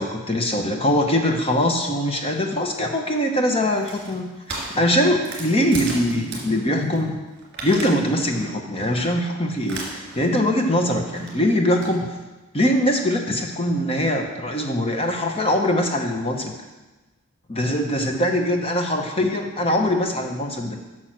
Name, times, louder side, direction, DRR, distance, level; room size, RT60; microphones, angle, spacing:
voice 1, 0.0-7.1 7.6-12.1 12.5-16.5 17.5-20.8, left 1 dB, 25° left, 3 dB, 1.0 m, -22 dB
sound 1, 3.7-7.0 7.3-8.0 8.3-8.6 9.0-9.2 9.6-10.3 10.6-11.9, right 2 dB, 50° right, 2.7 m, -36 dB
8.9 x 6.3 x 6.2 m, 1.2 s
head